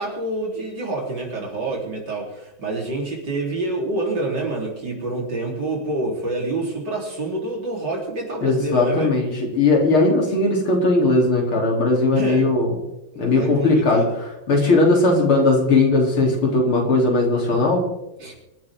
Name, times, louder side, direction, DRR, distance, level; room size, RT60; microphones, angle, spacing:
voice 1, 0.0-9.1 12.1-12.5 13.1-14.2 18.2-18.3, right 2 dB, 55° right, -1 dB, 4.7 m, -27 dB
voice 2, 8.4-12.8 13.2-14.0 14.5-17.8, left 2 dB, 85° left, -1 dB, 4.6 m, -18 dB
25.0 x 12.0 x 3.8 m, 0.92 s
omnidirectional pair, 2.3 m